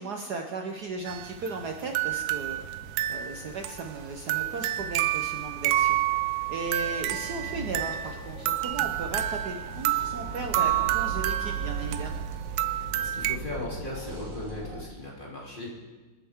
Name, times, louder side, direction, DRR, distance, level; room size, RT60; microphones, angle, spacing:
voice 1, 0.0-2.6 3.1-6.0 6.5-12.2, right 4 dB, 60° right, 3 dB, 1.3 m, -36 dB
sound 1, 0.9-14.8, right 1 dB, 40° right, 1.9 m, -41 dB
sound 2, 1.1-13.4, right 13 dB, 90° right, 1.5 m, -29 dB
voice 2, 13.0-15.7, left 1 dB, 25° left, -5 dB, 3.2 m, -37 dB
26.0 x 9.1 x 3.6 m, 1.3 s
omnidirectional pair, 2.3 m